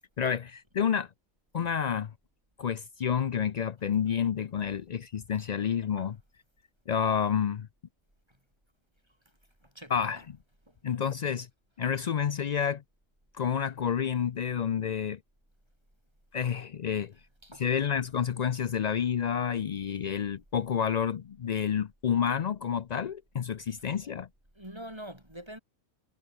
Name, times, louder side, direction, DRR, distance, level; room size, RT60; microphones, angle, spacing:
voice 1, 0.2-1.1 1.5-2.1 2.6-6.1 6.9-7.7 9.9-10.2 10.8-11.5 11.8-12.8 13.3-15.2 16.3-17.1 17.6-24.3, left 8 dB, 90° left, 0.3 m, -29 dB
voice 2, 9.6-10.2 10.7-10.8 17.4-17.7 23.7-23.9 24.6-25.6, right 1 dB, 20° right, 7.0 m, -46 dB
omnidirectional pair, 1.4 m